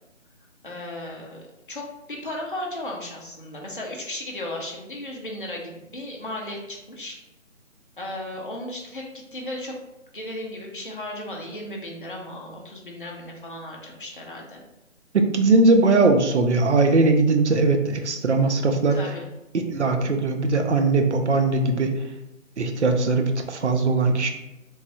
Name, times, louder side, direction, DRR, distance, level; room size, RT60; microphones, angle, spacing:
voice 1, 0.6-7.2 8.0-9.7 10.1-14.6 18.4-18.5 18.9-19.2 19.9-20.1, left 1 dB, 45° left, -2 dB, 0.4 m, -35 dB
voice 2, 15.1-19.0 19.7-22.0 22.6-24.3, right 3 dB, 60° right, 5 dB, 0.5 m, -20 dB
3.0 x 2.3 x 2.8 m, 0.92 s
figure-of-eight pair, 175°, 39 cm